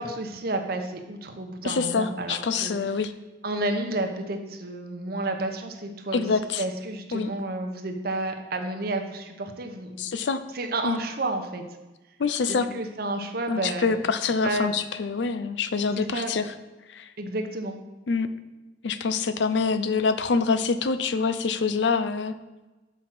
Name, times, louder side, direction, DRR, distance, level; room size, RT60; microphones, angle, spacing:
voice 1, 0.0-2.7 3.4-10.0 10.5-11.6 12.5-14.0 14.4-14.7 16.0-16.3 17.2-17.8, right 2 dB, 55° right, 5 dB, 0.8 m, -31 dB
voice 2, 1.6-3.1 6.1-6.6 7.1-7.3 10.0-10.4 10.8-11.0 12.2-12.7 13.5-16.4 16.9-17.1 18.1-18.3 18.8-22.3, left 4 dB, 80° left, 12 dB, 0.5 m, -25 dB
6.1 x 5.1 x 5.8 m, 1.1 s
head